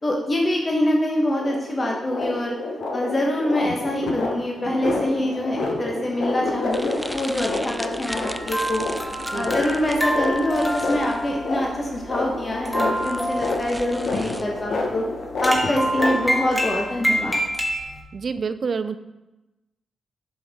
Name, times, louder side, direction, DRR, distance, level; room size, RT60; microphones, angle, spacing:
voice 1, 0.0-2.6 2.9-8.8 9.3-15.0 15.4-17.4, left 1 dB, 35° left, -1 dB, 1.2 m, -25 dB
sound 1, 1.4-16.7, left 3 dB, 70° left, 0.9 m, -29 dB
sound 2, 6.7-14.4, equal, 5° right, 0.5 m, -38 dB
sound 3, 8.1-18.0, equal, 15° left, 1.6 m, -28 dB
voice 2, 18.1-19.0, right 5 dB, 60° right, 11 dB, 0.4 m, -27 dB
6.9 x 5.5 x 3.6 m, 1.0 s
supercardioid pair, 40°, 0 cm